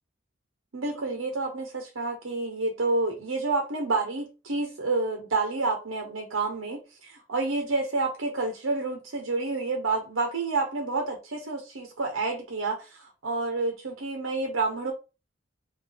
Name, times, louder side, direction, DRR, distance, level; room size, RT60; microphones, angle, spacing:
voice 1, 0.7-14.9, right 3 dB, 85° right, 2 dB, 0.9 m, -29 dB
3.4 x 2.6 x 3.6 m, 0.30 s
head